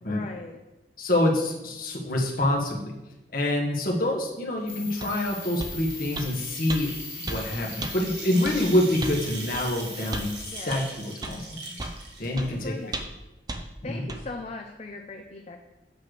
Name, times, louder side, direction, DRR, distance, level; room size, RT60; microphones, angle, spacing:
voice 1, 0.0-0.6 10.5-10.7 12.4-13.0 13.8-15.6, left 3 dB, 35° left, 3 dB, 0.5 m, -39 dB
voice 2, 1.0-2.9 3.3-6.9 7.2-11.9 12.2-12.9 13.8-14.1, left 1 dB, 55° left, -1 dB, 1.3 m, -26 dB
sound 1, 4.6-13.0, right 2 dB, 80° right, 1.6 m, -41 dB
sound 2, 4.7-10.5, left 5 dB, 10° left, 1.6 m, -41 dB
sound 3, 5.0-5.1 5.6-5.8 6.2-6.3 6.7-6.8 7.3-7.4 7.8-7.9 8.5-8.6 9.0-9.2 9.5-9.7 10.1-10.3 10.7-10.8 11.2-11.4 11.8-12.0 12.4-12.5 12.9-13.2 13.5-13.6 14.1-14.2, right 2 dB, 25° right, 0.5 m, -34 dB
8.3 x 3.2 x 6.5 m, 1.0 s
head